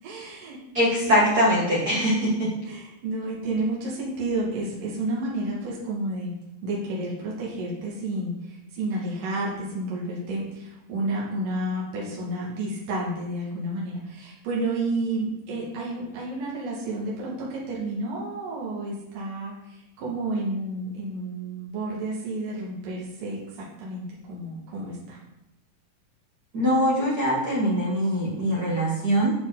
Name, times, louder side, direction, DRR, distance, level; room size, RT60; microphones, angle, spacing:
voice 1, 0.0-0.6 1.1-1.3 1.9-2.3 2.7-6.3 6.6-24.0 24.3-25.2, right 2 dB, 70° right, -5 dB, 3.5 m, -31 dB
voice 2, 0.7-2.5 26.5-29.3, equal, 55° right, -6 dB, 1.0 m, -22 dB
11.5 x 4.4 x 3.9 m, 0.91 s
omnidirectional pair, 4.0 m